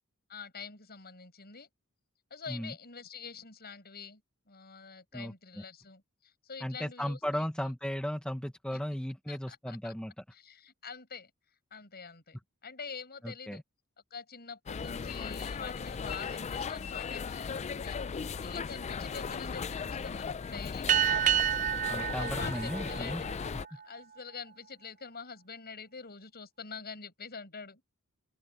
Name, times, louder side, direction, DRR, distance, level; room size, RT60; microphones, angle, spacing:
voice 1, 0.3-1.7 2.3-4.2 4.5-7.5 8.7-8.8 9.3-9.9 10.3-11.3 11.7-12.4 12.6-13.6 14.1-20.9 22.2-23.1 23.4-27.8, left 5 dB, 45° left, 7.4 m, -46 dB
voice 2, 5.1-5.6 6.6-10.2 13.2-13.6 21.9-23.2, equal, 5° left, 1.1 m, -36 dB
sound 1, 14.7-23.7, left 5 dB, 30° left, 0.4 m, -37 dB
sound 2, 20.9-23.8, right 10 dB, 35° right, 0.4 m, -29 dB
open air
head